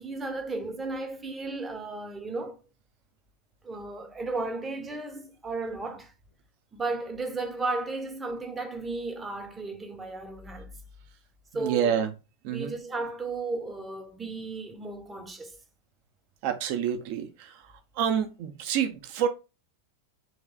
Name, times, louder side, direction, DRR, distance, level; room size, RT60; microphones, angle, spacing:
voice 1, 0.0-2.6 3.6-6.1 6.7-10.7 11.5-12.0 12.5-15.6, right 3 dB, 15° right, 0.8 m, -34 dB
voice 2, 11.5-12.1 12.4-12.8 16.4-19.3, right 8 dB, 45° right, 0.7 m, -28 dB
6.3 x 3.1 x 2.2 m
figure-of-eight pair, 90°, 0 cm